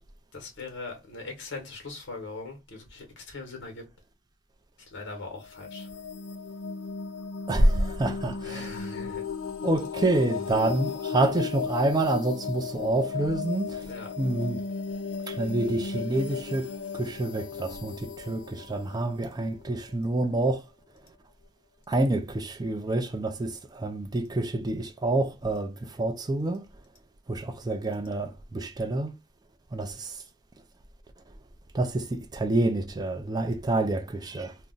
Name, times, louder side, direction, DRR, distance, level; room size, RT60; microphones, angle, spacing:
voice 1, 0.3-3.8 4.9-5.9 8.4-9.2 13.8-14.1, left 3 dB, 60° left, 1.0 m, -40 dB
sound 1, 5.4-20.1, left 5 dB, 80° left, 0.4 m, -35 dB
voice 2, 7.5-8.7 9.6-13.9 14.2-14.6 15.3-16.7 16.9-20.6 21.9-26.6 27.3-29.1 29.7-30.2 31.7-34.6, right 2 dB, 20° right, 0.3 m, -27 dB
2.4 x 2.1 x 3.7 m
head